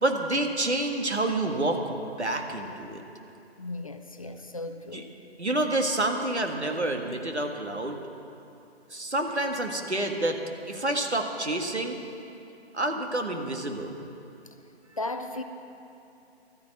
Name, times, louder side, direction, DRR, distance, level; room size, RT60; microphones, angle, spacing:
voice 1, 0.0-3.0 4.9-5.0 5.4-8.0 8.9-10.4 10.7-12.0 12.7-14.0, right 2 dB, 80° right, 4 dB, 1.7 m, -28 dB
voice 2, 3.6-5.1 15.0-15.4, left 2 dB, 30° left, 7 dB, 0.6 m, -35 dB
13.0 x 10.0 x 8.0 m, 2.7 s
figure-of-eight pair, 145°, 33 cm